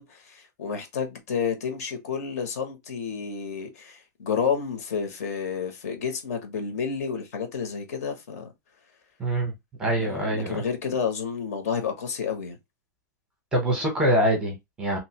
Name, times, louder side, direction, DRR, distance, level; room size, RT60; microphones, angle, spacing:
voice 1, 0.0-8.5 9.9-12.6, left 6 dB, 55° left, 1.0 m, -30 dB
voice 2, 9.2-9.5 9.8-10.6 13.5-15.0, right 1 dB, 10° right, 0.9 m, -24 dB
3.0 x 2.6 x 2.8 m
supercardioid pair, 175°, 10 cm